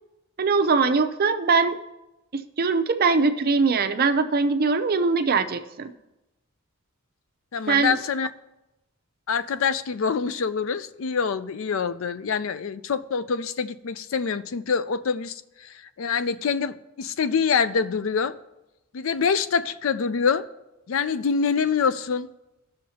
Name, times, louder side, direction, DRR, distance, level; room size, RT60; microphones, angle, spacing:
voice 1, 0.4-1.8 2.3-5.9 7.7-8.0, right 4 dB, 45° right, 0.6 m, -22 dB
voice 2, 7.5-8.3 9.3-18.4 18.9-20.5 20.9-22.3, left 6 dB, 70° left, 0.4 m, -25 dB
18.0 x 6.4 x 2.8 m
head